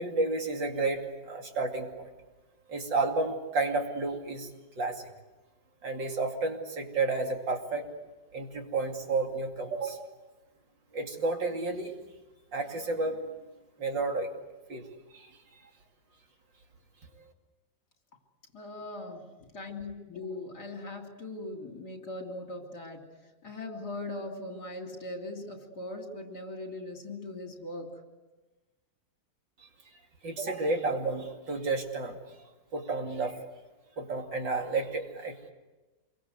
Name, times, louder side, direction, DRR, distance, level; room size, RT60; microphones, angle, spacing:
voice 1, 0.0-2.1 2.7-4.5 4.8-5.0 5.8-7.8 8.3-10.1 10.9-11.9 12.5-13.4 13.8-14.3 14.7-14.8 15.1-15.3 29.6-29.7 30.2-32.2 32.7-33.4 34.0-35.5, right 3 dB, 70° right, 2 dB, 3.3 m, -31 dB
voice 2, 18.5-28.0, left 2 dB, 55° left, 2 dB, 3.7 m, -40 dB
27.0 x 23.0 x 8.1 m, 1.2 s
omnidirectional pair, 2.1 m